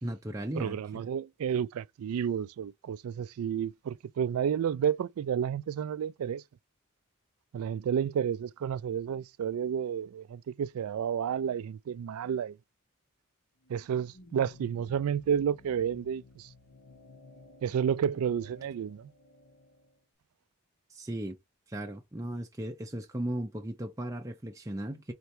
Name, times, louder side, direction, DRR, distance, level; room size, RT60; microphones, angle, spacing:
voice 1, 0.0-1.1 20.9-21.4 21.7-25.1, right 1 dB, 15° right, 0.5 m, -36 dB
voice 2, 0.6-6.4 7.5-12.6 13.7-16.5 17.6-19.1, right 8 dB, 80° right, 0.3 m, -31 dB
sound 1, 13.6-20.0, left 2 dB, 70° left, 1.3 m, -54 dB
4.4 x 2.8 x 3.1 m
head